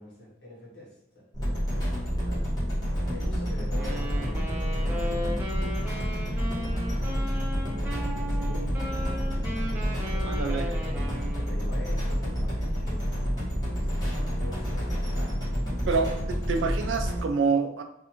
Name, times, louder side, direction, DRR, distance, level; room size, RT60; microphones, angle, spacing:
voice 1, 0.0-2.6 3.0-11.0 11.3-13.1 13.6-16.4, left 1 dB, 70° left, -5 dB, 1.1 m, -46 dB
sound 1, 1.3-17.2, equal, 20° left, 1.1 m, -29 dB
Wind instrument woodwind instrument, 3.7-11.7, equal, 10° right, 0.4 m, -37 dB
voice 2, 10.3-10.7 15.9-16.1 16.5-17.8, right 5 dB, 85° right, 5 dB, 0.4 m, -26 dB
2.5 x 2.4 x 2.8 m, 0.82 s
head